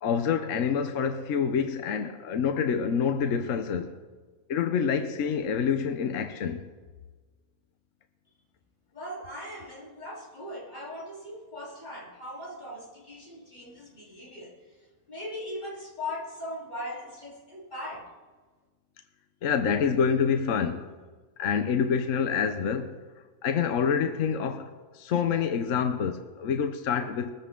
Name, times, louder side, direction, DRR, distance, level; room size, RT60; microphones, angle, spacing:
voice 1, 0.0-4.0 4.5-6.7 19.4-20.9 21.4-23.0 23.4-27.3, left 7 dB, 65° left, 1.1 m, -27 dB
voice 2, 8.9-14.6 15.1-18.1, left 1 dB, 30° left, 3.8 m, -39 dB
21.5 x 14.5 x 3.8 m
omnidirectional pair, 1.6 m